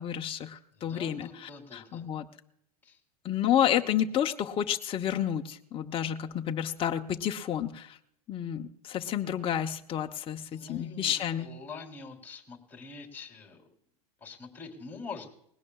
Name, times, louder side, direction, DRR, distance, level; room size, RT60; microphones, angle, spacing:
voice 1, 0.0-2.3 3.2-8.0 8.3-11.5, left 10 dB, 25° left, 4 dB, 0.8 m, -30 dB
voice 2, 0.7-2.0 2.8-3.0 10.5-13.7 14.2-15.4, left 4 dB, 10° left, 1 dB, 3.3 m, -45 dB
20.0 x 17.0 x 2.3 m, 0.71 s
hypercardioid pair, 100°, 20 cm